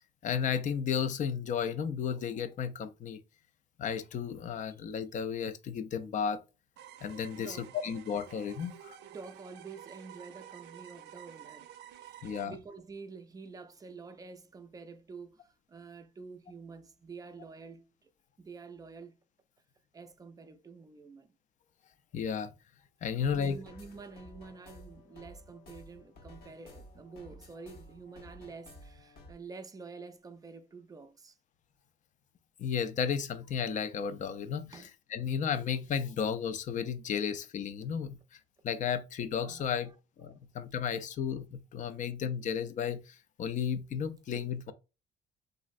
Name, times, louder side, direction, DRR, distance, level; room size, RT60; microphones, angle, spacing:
voice 1, 0.2-3.2 3.8-6.4 7.0-7.6 7.8-9.0 12.2-12.5 22.1-22.5 23.0-23.6 32.6-39.9 40.2-44.7, left 7 dB, 45° left, 0.4 m, -33 dB
sound 1, 6.8-12.4, right 10 dB, 80° right, 0.4 m, -51 dB
voice 2, 7.4-7.8 8.6-8.8 9.1-18.1 18.4-19.2 19.9-21.3 23.2-31.4 34.7-34.9 39.4-40.0, right 4 dB, 20° right, 0.4 m, -48 dB
sound 2, 23.2-29.3, left 1 dB, 65° left, 0.9 m, -53 dB
3.0 x 2.5 x 2.4 m
cardioid pair, 105°, 18 cm